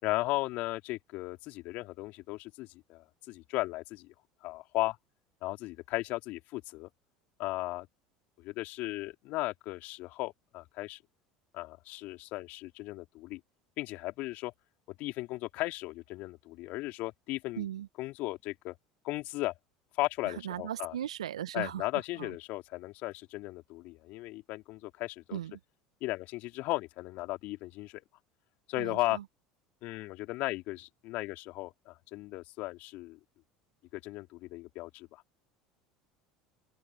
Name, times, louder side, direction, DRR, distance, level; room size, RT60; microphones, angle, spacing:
voice 1, 0.0-4.1 4.4-5.0 5.4-6.9 7.4-7.9 8.4-11.0 11.5-13.4 13.8-14.5 15.0-17.7 18.0-18.7 19.0-19.5 20.0-21.0 21.5-25.4 26.0-28.0 28.7-29.2 29.8-33.2 33.9-35.2, left 19 dB, 55° left, 3.0 m, -36 dB
voice 2, 17.6-17.9 20.3-21.9 22.2-22.3 25.3-25.5 28.8-29.2, right 11 dB, 80° right, 1.6 m, -37 dB
open air
figure-of-eight pair, 70°, 3 cm